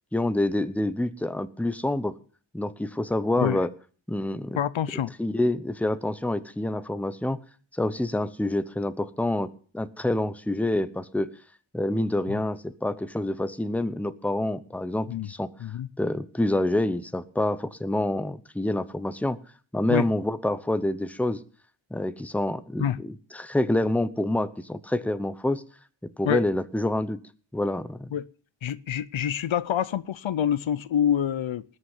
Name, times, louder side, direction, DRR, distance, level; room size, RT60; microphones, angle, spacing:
voice 1, 0.1-2.2 2.5-3.7 4.1-4.6 5.2-7.4 7.7-11.3 11.7-15.5 16.0-19.4 19.7-21.4 21.9-25.6 26.2-27.2 27.5-28.1, left 1 dB, 5° left, 0.8 m, -27 dB
voice 2, 4.6-5.1 15.1-15.3 15.6-15.9 19.9-20.1 22.8-23.0 26.2-26.4 28.1-28.2 28.6-31.6, left 9 dB, 80° left, 0.7 m, -26 dB
20.0 x 6.7 x 7.3 m
wide cardioid pair, 115°, 46 cm